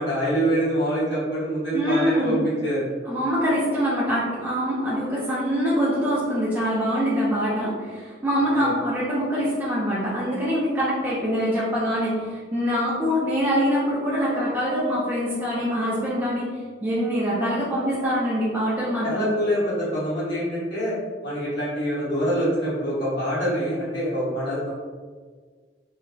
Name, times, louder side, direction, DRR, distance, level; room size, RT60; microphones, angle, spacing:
voice 1, 0.0-2.9 8.6-8.7 19.0-20.9 21.2-24.7, equal, 85° left, -9 dB, 1.4 m, -25 dB
voice 2, 1.7-2.4 3.0-16.5 16.8-19.3, equal, 10° right, -9 dB, 0.4 m, -24 dB
2.9 x 2.1 x 2.6 m, 1.5 s
head